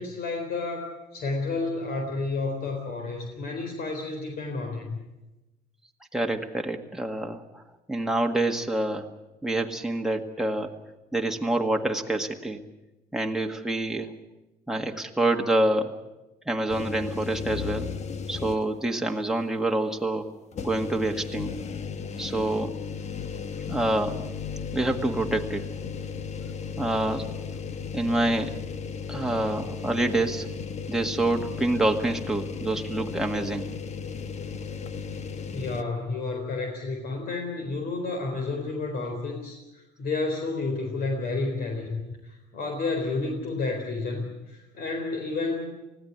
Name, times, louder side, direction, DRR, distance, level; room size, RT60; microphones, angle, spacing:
voice 1, 0.0-5.0 35.5-45.7, left 3 dB, 60° left, 3 dB, 4.0 m, -31 dB
voice 2, 6.1-7.6 7.9-9.1 9.4-10.7 11.1-12.6 13.1-14.1 14.7-16.0 16.5-17.9 18.3-20.3 20.6-21.6 22.2-22.8 23.7-24.3 24.7-25.7 26.8-27.3 27.9-28.6 29.1-30.5 30.9-33.7, right 1 dB, 5° right, 2 dB, 1.8 m, -27 dB
sound 1, 16.7-18.9 19.3-19.4 20.5-35.8, left 6 dB, 40° left, 1.1 m, -35 dB
20.0 x 16.0 x 9.6 m, 1.0 s
cardioid pair, 110°, 17 cm